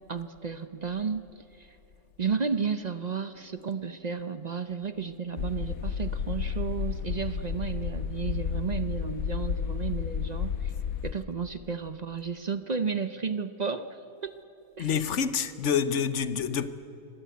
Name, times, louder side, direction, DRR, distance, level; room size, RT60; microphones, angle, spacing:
voice 1, 0.1-1.8 2.2-10.7 11.0-14.3 14.8-15.0, right 5 dB, 40° right, 0.6 m, -33 dB
sound 1, 5.4-11.1, left 7 dB, 85° left, 1.3 m, -32 dB
voice 2, 14.8-16.7, left 7 dB, 60° left, 1.2 m, -27 dB
24.5 x 18.0 x 9.3 m
omnidirectional pair, 1.4 m